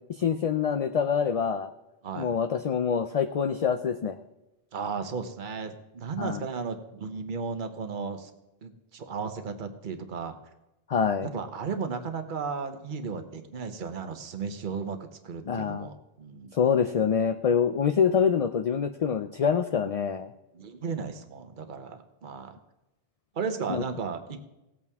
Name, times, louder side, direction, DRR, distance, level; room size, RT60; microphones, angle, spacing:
voice 1, 0.1-1.7 2.1-4.2 6.2-6.4 10.9-11.3 15.5-15.9 16.5-20.3 23.7-23.8, left 7 dB, 50° left, 8 dB, 0.5 m, -25 dB
voice 2, 4.7-8.3 8.6-10.4 11.2-15.0 15.2-16.5 20.5-22.6 23.3-24.4, right 5 dB, 55° right, 7 dB, 1.1 m, -35 dB
17.5 x 8.4 x 3.5 m, 0.95 s
omnidirectional pair, 1.0 m